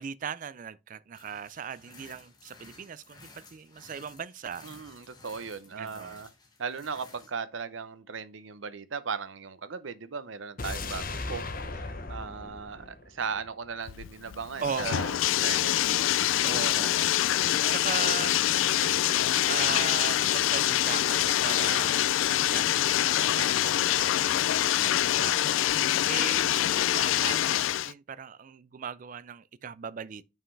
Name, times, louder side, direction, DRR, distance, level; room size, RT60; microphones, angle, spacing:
voice 1, 0.0-4.7 5.7-6.2 14.6-15.2 16.4-17.0 17.6-25.4 25.7-30.2, right 7 dB, 40° right, 0.3 m, -39 dB
sound 1, 1.1-7.3, left 3 dB, 20° left, 1.6 m, -54 dB
voice 2, 4.6-6.3 6.6-11.4 11.7-15.1 15.4-15.8 25.7-26.1, right 5 dB, 75° right, 0.7 m, -37 dB
sound 2, 10.6-13.7 14.0-14.1, left 3 dB, 45° left, 1.0 m, -37 dB
Bathtub (filling or washing), 13.9-27.9, left 13 dB, 80° left, 0.3 m, -25 dB
7.3 x 5.6 x 3.2 m
head